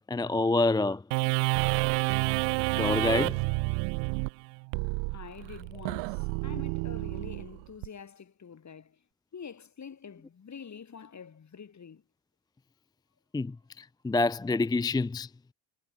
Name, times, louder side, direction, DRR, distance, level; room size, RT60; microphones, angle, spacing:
voice 1, 0.1-1.0 2.8-3.4 13.3-15.3, left 3 dB, 10° left, 0.5 m, -27 dB
sound 1, 1.1-7.9, right 40 dB or more, 85° right, 0.8 m, -29 dB
voice 2, 5.1-9.0 9.3-12.0, left 6 dB, 35° left, 4.0 m, -46 dB
supercardioid pair, 80°, 48 cm